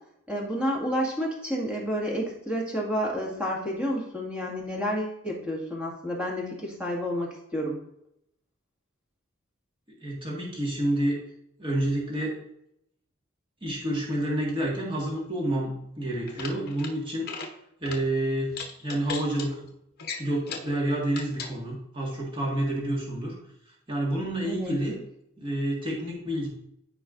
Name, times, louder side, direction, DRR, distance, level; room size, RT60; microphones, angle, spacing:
voice 1, 0.3-7.8 24.4-24.8, equal, 5° right, -3 dB, 1.8 m, -30 dB
voice 2, 10.0-11.2 11.6-12.4 13.6-17.3 17.8-18.5 18.8-19.6 20.2-23.4 23.9-25.0 25.4-26.5, right 1 dB, 25° right, -4 dB, 1.7 m, -29 dB
sound 1, 16.3-16.9 17.2-17.5 17.8-18.0 18.5-19.5 20.0-20.7 21.1-21.5, left 5 dB, 50° left, 1.0 m, -37 dB
14.0 x 4.7 x 2.5 m, 0.77 s
head